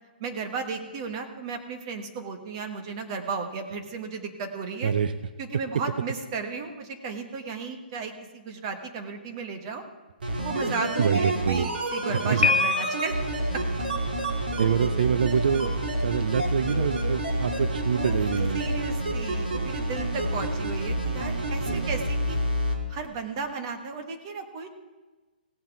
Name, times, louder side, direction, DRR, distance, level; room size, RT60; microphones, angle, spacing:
voice 1, 0.2-4.9 5.4-9.8 10.4-13.2 13.5-13.8 17.9-18.2 18.5-22.4 22.9-24.7, right 4 dB, 30° right, 5 dB, 1.3 m, -34 dB
sound 1, 10.2-22.7 23.0-23.1, right 1 dB, 75° right, 2.8 m, -28 dB
voice 2, 11.0-11.7 12.2-12.5 14.6-18.7 21.6-22.0, right 7 dB, 60° right, 11 dB, 0.6 m, -26 dB
Piano, 12.4-13.4, left 7 dB, 80° left, 0.5 m, -25 dB
17.0 x 7.6 x 4.6 m, 1.2 s
hypercardioid pair, 170°, 5 cm